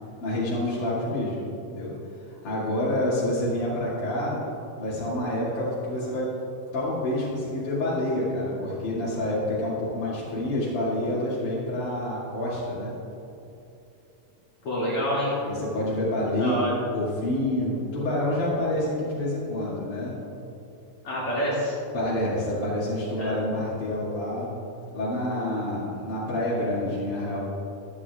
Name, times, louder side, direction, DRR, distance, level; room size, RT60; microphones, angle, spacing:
voice 1, 0.2-1.4 1.7-1.9 2.3-4.4 4.8-6.3 6.7-13.0 15.4-16.5 16.9-20.1 21.9-24.5 24.9-27.4, left 1 dB, 85° left, -10 dB, 4.0 m, -28 dB
voice 2, 14.6-15.4 16.4-16.7 21.0-21.8 23.2-23.4, equal, 50° left, -8 dB, 3.3 m, -27 dB
24.0 x 8.8 x 2.5 m, 2.8 s
omnidirectional pair, 3.5 m